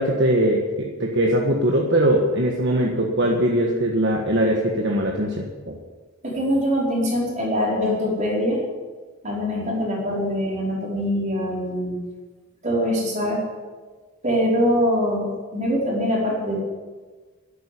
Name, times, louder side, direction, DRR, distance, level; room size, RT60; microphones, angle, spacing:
voice 1, 0.0-5.8, right 1 dB, 55° right, 0 dB, 1.5 m, -21 dB
voice 2, 6.2-8.6 9.2-12.0 12.6-13.4 14.2-16.6, equal, 35° right, -4 dB, 4.7 m, -23 dB
11.5 x 9.3 x 9.9 m, 1.4 s
head